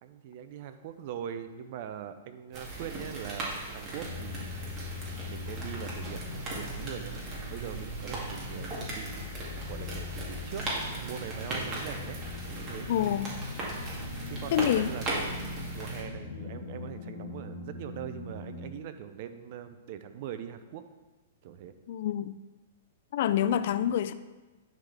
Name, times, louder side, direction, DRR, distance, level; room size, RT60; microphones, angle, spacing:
voice 1, 0.0-4.5 5.3-7.2 7.5-9.3 9.7-12.2 12.5-12.9 14.3-20.8 21.4-21.7, right 9 dB, 50° right, 0.5 m, -42 dB
sound 1, 2.5-16.0, right 2 dB, 30° right, 2.1 m, -38 dB
sound 2, 4.0-18.7, left 3 dB, 75° left, 1.3 m, -41 dB
voice 2, 12.9-13.4 14.5-14.9 21.9-22.4 23.1-24.1, left 10 dB, 60° left, 0.3 m, -27 dB
10.5 x 3.8 x 3.4 m
hypercardioid pair, 120°, 0 cm